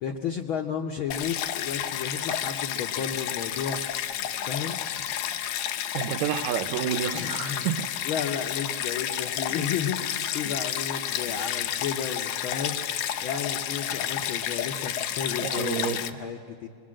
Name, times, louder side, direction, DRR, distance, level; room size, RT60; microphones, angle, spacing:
voice 1, 0.0-3.8 4.4-4.8 7.1-7.7 8.0-12.8 13.2-16.7, left 7 dB, 70° left, 2 dB, 1.2 m, -33 dB
Stream, 1.1-16.1, left 10 dB, 85° left, 2.3 m, -31 dB
voice 2, 5.9-7.9 15.4-16.0, right 11 dB, 80° right, 9 dB, 2.0 m, -29 dB
24.5 x 21.5 x 7.6 m, 2.3 s
omnidirectional pair, 3.3 m